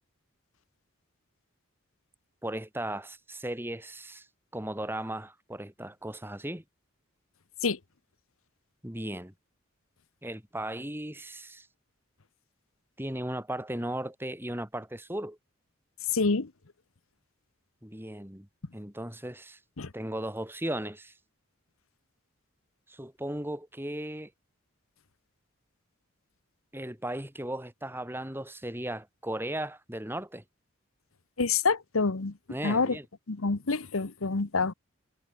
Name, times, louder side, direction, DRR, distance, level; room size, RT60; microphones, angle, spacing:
voice 1, 2.4-4.3 4.5-6.6 8.8-9.3 10.2-11.7 13.0-15.4 17.8-18.5 18.7-19.6 19.9-21.1 22.9-24.3 26.7-30.4 32.5-33.1, right 1 dB, 10° right, 3.6 m, -36 dB
voice 2, 16.1-16.5 19.8-19.9 31.4-32.3 32.6-33.0 33.3-34.7, left 4 dB, 80° left, 1.1 m, -27 dB
head